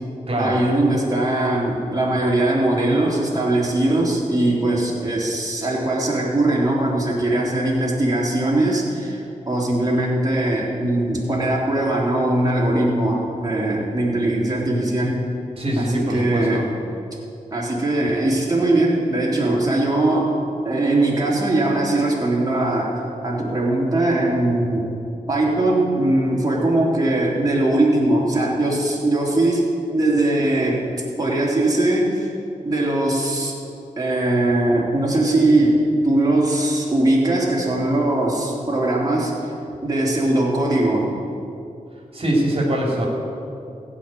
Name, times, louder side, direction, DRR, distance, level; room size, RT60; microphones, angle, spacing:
voice 1, 0.4-15.2 15.8-16.6 17.5-20.4 20.6-22.9 23.2-24.9 25.3-30.9 31.2-32.3 32.6-33.6 34.0-39.5 39.8-41.1, right 1 dB, 25° right, -4 dB, 3.3 m, -20 dB
voice 2, 15.6-16.7 42.1-43.1, right 1 dB, 45° right, -2 dB, 3.1 m, -22 dB
15.5 x 5.6 x 9.1 m, 2.6 s
wide cardioid pair, 75°, 14 cm